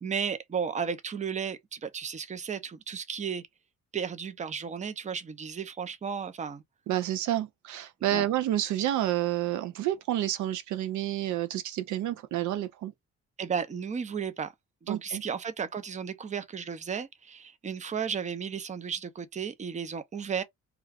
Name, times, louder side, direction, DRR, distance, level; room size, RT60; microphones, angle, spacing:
voice 1, 0.0-3.5 3.9-6.6 8.1-8.3 13.4-14.5 14.8-20.4, right 7 dB, 25° right, 0.5 m, -34 dB
voice 2, 6.9-12.9 14.9-15.2, right 12 dB, 75° right, 0.5 m, -29 dB
2.3 x 2.3 x 3.3 m
cardioid pair, 90°, 30 cm